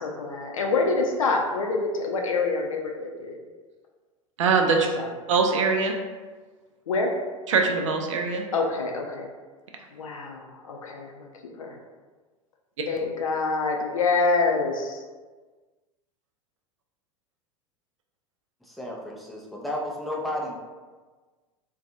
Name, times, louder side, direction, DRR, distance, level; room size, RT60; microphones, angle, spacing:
voice 1, 0.0-3.4 4.7-5.1 6.9-7.1 8.5-9.3 9.9-11.3 11.6-11.8 12.9-15.0, left 3 dB, 75° left, 1 dB, 0.4 m, -26 dB
voice 2, 4.4-4.9 5.3-5.9 7.5-8.4, right 4 dB, 65° right, 3 dB, 0.4 m, -22 dB
voice 3, 18.6-20.7, left 1 dB, ahead, -3 dB, 0.4 m, -33 dB
2.5 x 2.2 x 2.6 m, 1.4 s
figure-of-eight pair, 85°, 17 cm